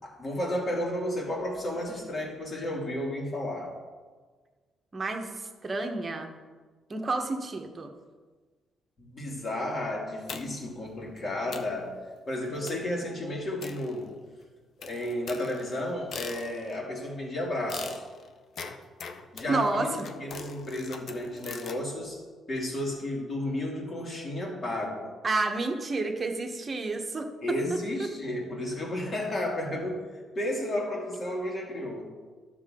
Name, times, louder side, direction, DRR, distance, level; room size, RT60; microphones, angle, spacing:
voice 1, 0.0-3.7 9.0-11.9 12.3-14.1 14.8-18.0 19.3-22.2 22.5-25.1 27.4-30.0 30.3-32.1, left 1 dB, 40° left, -2 dB, 2.7 m, -32 dB
voice 2, 4.9-6.3 6.9-7.9 19.5-19.9 25.2-27.3, right 3 dB, 30° right, 4 dB, 1.2 m, -30 dB
sound 1, 10.3-10.8 11.2-11.3 11.5-11.8 12.7-13.0 13.6-14.3 14.8-16.8 17.7-21.8, left 5 dB, 60° left, 0.7 m, -42 dB
12.0 x 6.7 x 3.8 m, 1.4 s
cardioid pair, 90°, 0 cm